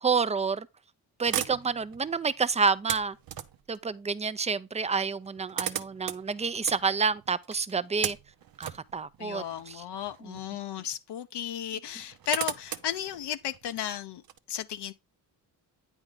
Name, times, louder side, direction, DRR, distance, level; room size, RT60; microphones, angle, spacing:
voice 1, 0.0-0.7 1.2-3.2 3.7-8.2 8.6-9.8 10.2-10.4, right 5 dB, 15° right, 0.5 m, -29 dB
sound 1, 1.2-3.8 4.8-4.9 5.1-10.6 10.9-11.0 11.9-14.4, right 10 dB, 55° right, 0.7 m, -38 dB
voice 2, 9.2-14.2 14.5-14.9, left 10 dB, 70° left, 0.7 m, -34 dB
8.7 x 4.5 x 3.8 m
cardioid pair, 65°, 43 cm